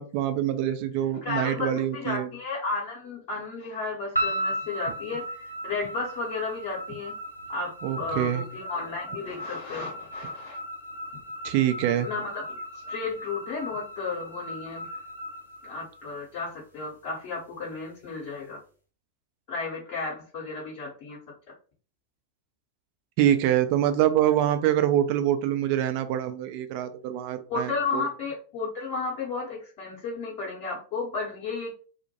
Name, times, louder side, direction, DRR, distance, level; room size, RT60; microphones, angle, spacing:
voice 1, 0.0-2.3 7.8-8.4 11.4-12.1 23.2-28.1, right 11 dB, 45° right, 8 dB, 0.3 m, -25 dB
voice 2, 1.2-7.2 7.5-7.7 8.0-10.6 12.0-14.9 15.6-18.6 19.5-21.2 27.5-31.7, left 4 dB, 45° left, -5 dB, 0.8 m, -33 dB
sound 1, 4.1-16.4, equal, 85° left, 0.7 m, -36 dB
2.1 x 2.1 x 2.8 m, 0.39 s
figure-of-eight pair, 90°, 0 cm